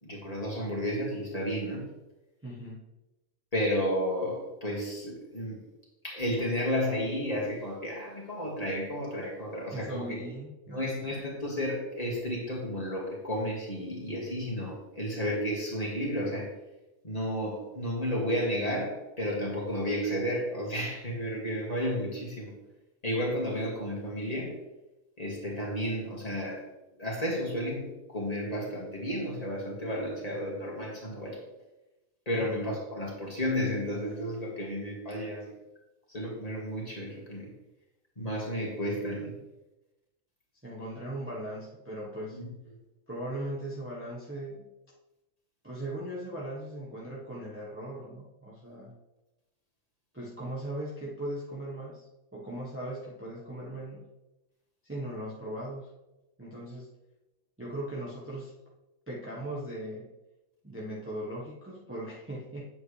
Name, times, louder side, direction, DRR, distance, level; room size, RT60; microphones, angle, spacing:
voice 1, 0.0-1.9 3.5-5.6 6.0-10.2 10.7-16.5 17.0-22.6 23.0-24.6 25.2-26.6 27.0-31.4 32.3-35.5 36.1-37.5 38.2-39.4 42.3-42.5, equal, 25° left, -4 dB, 2.3 m, -32 dB
voice 2, 2.4-2.8 9.7-11.2 32.4-32.6 40.6-42.4 43.1-44.7 45.6-48.9 50.1-54.1 54.8-55.9 56.4-56.9 57.6-58.5 59.1-60.1 60.6-62.7, right 1 dB, 10° right, -6 dB, 1.2 m, -39 dB
9.2 x 7.6 x 3.3 m, 1.0 s
omnidirectional pair, 1.5 m